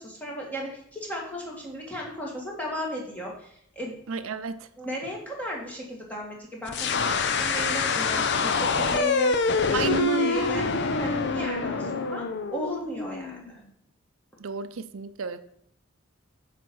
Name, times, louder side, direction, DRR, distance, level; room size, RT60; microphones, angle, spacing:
voice 1, 0.0-4.0 4.8-13.6, equal, 5° left, -2 dB, 2.0 m, -36 dB
voice 2, 4.1-4.6 9.7-10.5 14.4-15.4, right 4 dB, 80° right, 11 dB, 0.5 m, -30 dB
sound 1, 6.7-13.5, left 4 dB, 55° left, 0.6 m, -26 dB
9.2 x 4.2 x 6.2 m, 0.70 s
head